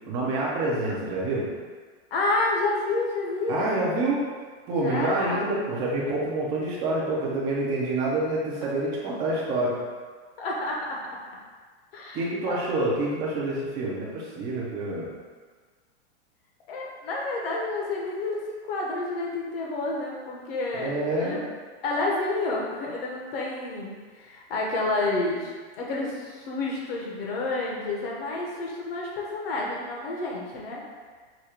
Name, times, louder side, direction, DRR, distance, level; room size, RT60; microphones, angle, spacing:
voice 1, 0.1-1.5 3.5-4.2 4.7-9.8 12.1-15.1 20.7-21.4, right 2 dB, 10° right, -5 dB, 0.3 m, -27 dB
voice 2, 2.1-3.7 4.8-5.4 10.4-11.0 11.9-12.6 16.7-21.4 21.8-30.8, left 2 dB, 55° left, -2 dB, 1.1 m, -29 dB
4.9 x 2.3 x 4.2 m, 1.5 s
supercardioid pair, 165°, 35 cm